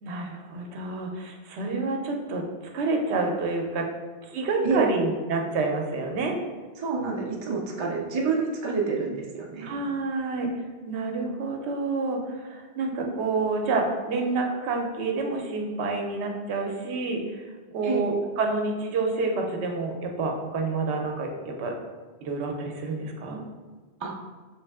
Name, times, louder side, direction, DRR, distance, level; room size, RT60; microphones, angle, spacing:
voice 1, 0.0-2.4 2.7-3.9 4.2-6.4 8.2-8.4 8.9-9.0 9.6-10.5 10.9-17.5 17.7-21.7 22.2-23.4, right 3 dB, 85° right, 2 dB, 0.9 m, -28 dB
voice 2, 6.8-9.8 17.8-18.0 24.0-24.1, right 4 dB, 50° right, -2 dB, 0.3 m, -28 dB
3.2 x 3.1 x 3.4 m, 1.4 s
omnidirectional pair, 1.1 m